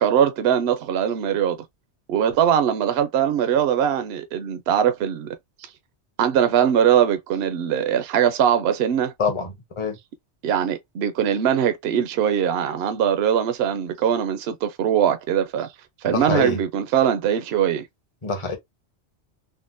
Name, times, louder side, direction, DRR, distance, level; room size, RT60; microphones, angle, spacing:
voice 1, 0.0-1.6 2.1-5.3 6.2-9.1 10.4-15.7 16.0-17.8, right 9 dB, 65° right, 0.7 m, -21 dB
voice 2, 9.2-10.0 16.0-16.6 18.2-18.6, left 4 dB, 30° left, 0.8 m, -25 dB
3.6 x 2.1 x 2.5 m
omnidirectional pair, 1.2 m